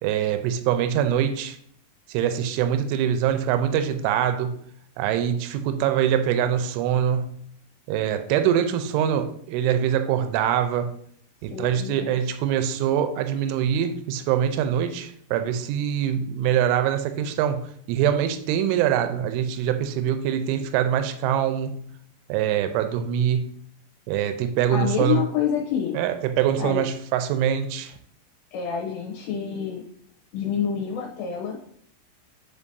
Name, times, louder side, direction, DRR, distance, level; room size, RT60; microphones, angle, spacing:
voice 1, 0.0-1.6 2.1-4.6 5.0-7.3 7.9-10.9 11.4-21.9 22.3-23.5 24.1-25.2 25.9-27.9, right 9 dB, 85° right, 8 dB, 3.0 m, -24 dB
voice 2, 11.5-12.2 24.7-26.0 26.6-26.8 28.5-29.8 30.3-31.6, left 8 dB, 75° left, 0 dB, 2.6 m, -27 dB
9.8 x 5.0 x 2.7 m, 0.64 s
omnidirectional pair, 5.6 m